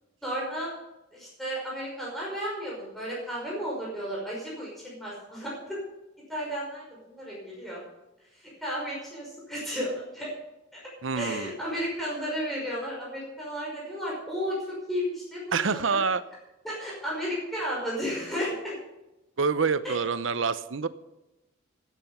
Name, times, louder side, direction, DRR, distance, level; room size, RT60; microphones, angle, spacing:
voice 1, 0.2-0.7 1.1-5.8 6.3-7.8 8.3-10.3 10.7-10.8 11.2-16.0 16.6-18.8 19.8-20.0, equal, ahead, -5 dB, 5.6 m, -33 dB
voice 2, 11.0-11.5 15.5-16.2 19.4-20.9, right 5 dB, 75° right, 13 dB, 0.8 m, -26 dB
15.5 x 9.2 x 5.6 m, 0.97 s
head